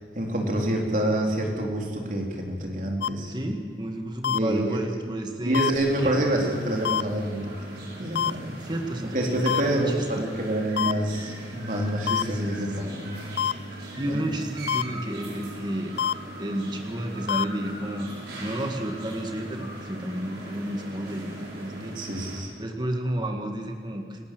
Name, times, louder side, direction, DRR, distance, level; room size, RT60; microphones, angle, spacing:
voice 1, 0.1-3.3 4.3-5.1 5.4-8.5 9.1-12.7 13.0-13.1 13.4-13.6 14.0-14.2 22.0-22.5, right 1 dB, 45° right, 0 dB, 4.1 m, -27 dB
sound 1, 3.0-3.1 4.2-4.4 5.5-5.7 6.8-7.0 8.1-8.3 9.5-9.6 10.8-10.9 12.1-12.2 13.4-13.5 14.7-14.8 16.0-16.1 17.3-17.4, left 9 dB, 80° left, 0.5 m, -24 dB
voice 2, 3.3-5.6 6.0-6.5 8.6-10.2 12.4-13.1 13.7-15.9 16.4-18.1 18.4-21.9 22.6-24.3, right 1 dB, 25° right, 4 dB, 2.0 m, -32 dB
sound 2, 5.7-22.4, right 1 dB, 65° right, 6.5 m, -39 dB
28.0 x 13.0 x 7.9 m, 2.2 s
head